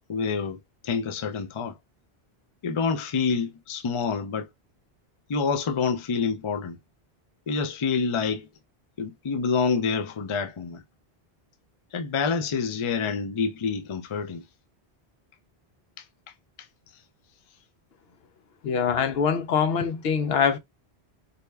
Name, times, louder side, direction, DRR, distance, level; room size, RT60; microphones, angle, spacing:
voice 1, 0.1-0.6 0.8-1.7 2.6-4.5 5.3-6.8 7.5-8.5 9.0-10.8 11.9-14.4, left 5 dB, 45° left, 0.4 m, -27 dB
voice 2, 18.6-20.6, left 6 dB, 75° left, 0.8 m, -24 dB
4.1 x 2.2 x 3.3 m
omnidirectional pair, 1.1 m